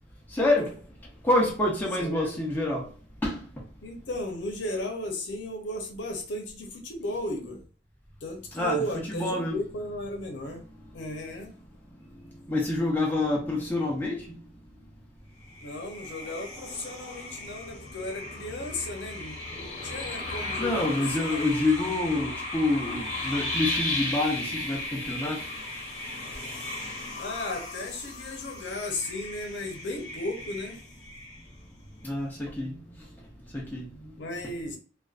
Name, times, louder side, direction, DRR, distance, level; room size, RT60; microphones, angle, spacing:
voice 1, 0.3-0.8 1.2-2.9 3.2-3.4 8.5-8.8 9.1-9.6 12.5-14.4 20.6-25.4 32.0-32.8 33.5-34.1, left 2 dB, 10° left, 0.6 m, -27 dB
voice 2, 2.0-2.4 3.8-7.6 8.2-10.7 10.9-11.5 15.6-21.6 27.2-30.8 34.2-34.8, left 1 dB, 85° left, 0.6 m, -35 dB
sound 1, 15.5-31.7, left 2 dB, 45° left, 1.1 m, -36 dB
2.5 x 2.2 x 2.4 m
head